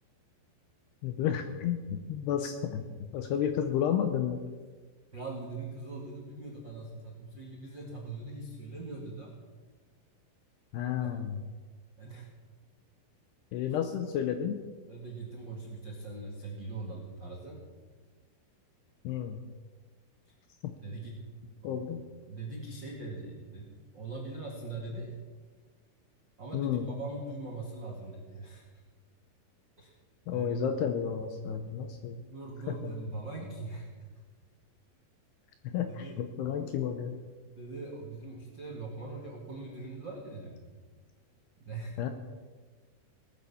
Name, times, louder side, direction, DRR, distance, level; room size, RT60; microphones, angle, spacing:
voice 1, 1.0-4.4 10.7-11.4 13.5-14.6 19.0-19.4 20.6-20.7 21.6-22.0 26.5-26.9 30.3-32.2 32.7-32.9 35.6-37.2 42.0-42.1, left 9 dB, 75° left, 7 dB, 2.5 m, -32 dB
voice 2, 5.1-9.3 11.0-11.2 12.0-12.3 14.9-17.6 20.3-20.4 20.8-21.2 21.6-21.8 22.3-25.1 26.4-28.6 29.8-29.9 30.3-30.6 32.2-33.9 35.9-36.3 37.5-40.6 41.6-42.0, right 3 dB, 55° right, -1 dB, 1.2 m, -41 dB
19.0 x 9.5 x 7.1 m, 1.4 s
omnidirectional pair, 5.5 m